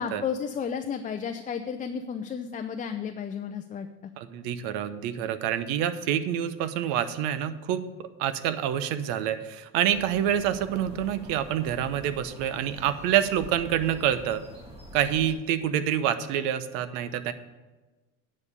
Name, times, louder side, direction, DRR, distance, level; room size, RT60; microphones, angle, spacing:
voice 1, 0.0-3.9, left 7 dB, 20° left, 6 dB, 0.5 m, -32 dB
voice 2, 4.2-7.8 8.2-14.4 14.9-17.3, right 10 dB, 75° right, 13 dB, 0.9 m, -27 dB
sound 1, 9.9-15.3, equal, 15° right, 2.3 m, -46 dB
9.6 x 5.3 x 8.2 m, 1.2 s
supercardioid pair, 120°, 35 cm